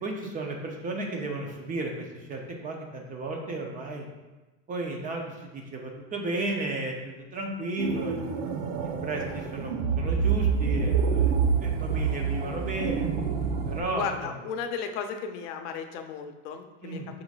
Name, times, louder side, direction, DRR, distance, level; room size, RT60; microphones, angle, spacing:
voice 1, 0.0-4.0 4.7-8.2 9.0-11.3 11.6-13.0 13.7-14.3 16.8-17.1, right 2 dB, 20° right, 1 dB, 0.5 m, -33 dB
sound 1, 7.8-13.8, right 6 dB, 80° right, 0.7 m, -27 dB
voice 2, 13.9-17.0, left 6 dB, 70° left, 6 dB, 0.6 m, -34 dB
5.9 x 3.8 x 2.4 m, 1.1 s
supercardioid pair, 140°, 37 cm